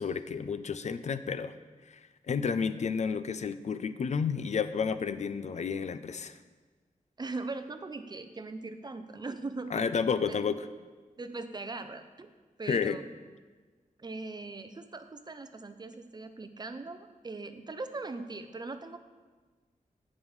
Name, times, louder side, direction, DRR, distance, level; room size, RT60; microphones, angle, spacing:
voice 1, 0.0-1.5 1.9-2.0 2.3-6.4 9.7-10.7 12.7-13.0, left 6 dB, 55° left, 12 dB, 0.4 m, -31 dB
voice 2, 7.2-10.0 10.3-10.4 11.2-12.3 12.6-13.0 14.0-19.0, right 3 dB, 30° right, 9 dB, 0.5 m, -40 dB
15.0 x 5.3 x 3.2 m, 1.4 s
wide cardioid pair, 135°, 14 cm